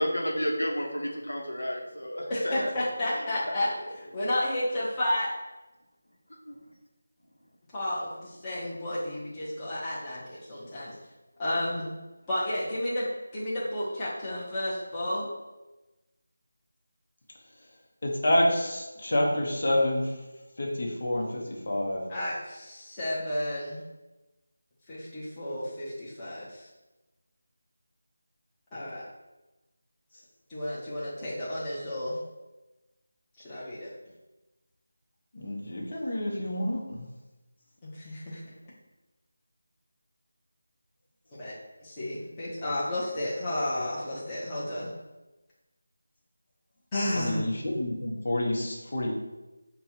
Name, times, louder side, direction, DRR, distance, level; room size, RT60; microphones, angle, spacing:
voice 1, 0.0-2.7 6.5-6.6, equal, 90° left, 0 dB, 0.9 m, -31 dB
voice 2, 2.3-5.3 7.7-10.9 11.4-11.9 12.3-13.1 13.3-15.3 22.1-23.8 24.9-26.7 28.7-29.0 30.5-32.2 33.4-33.9 37.8-38.5 41.4-41.5 41.8-44.9 46.9-47.4, left 1 dB, 15° left, -9 dB, 0.9 m, -32 dB
voice 3, 18.0-20.0 20.6-21.2 21.7-22.0 35.3-37.0 47.1-49.1, left 1 dB, 55° left, -1 dB, 1.0 m, -28 dB
5.3 x 2.3 x 2.8 m, 1.1 s
figure-of-eight pair, 170°, 0 cm